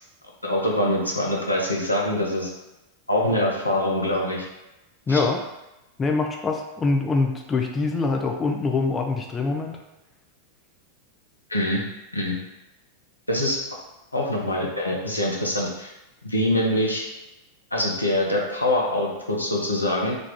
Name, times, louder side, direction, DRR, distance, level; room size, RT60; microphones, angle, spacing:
voice 1, 0.4-2.5 3.1-4.5 5.1-5.2 11.5-11.8 12.1-12.4 13.3-13.6 14.1-15.9 16.2-17.0 17.7-20.1, left 1 dB, 85° left, -2 dB, 0.7 m, -24 dB
voice 2, 5.1-5.4 6.0-9.8, left 3 dB, 20° left, 3 dB, 0.3 m, -24 dB
3.4 x 2.3 x 3.6 m, 0.96 s
figure-of-eight pair, 90°, 0 cm